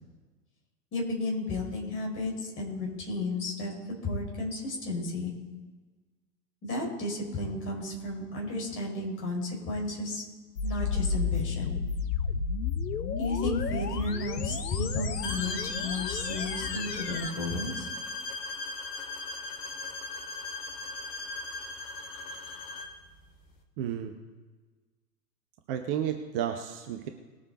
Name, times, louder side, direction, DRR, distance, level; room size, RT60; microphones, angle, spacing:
voice 1, 0.9-3.7 4.0-5.3 6.6-10.2 10.6-11.8 13.2-15.6 15.8-17.9, left 2 dB, 25° left, -1 dB, 4.7 m, -33 dB
sound 1, 10.6-17.3, left 6 dB, 75° left, 1.0 m, -32 dB
sound 2, 15.2-23.0, left 3 dB, 45° left, 2.2 m, -38 dB
voice 2, 23.8-24.2 25.7-27.1, right 9 dB, 35° right, 6 dB, 0.9 m, -32 dB
19.5 x 7.5 x 4.0 m, 1.3 s
figure-of-eight pair, 100°, 48 cm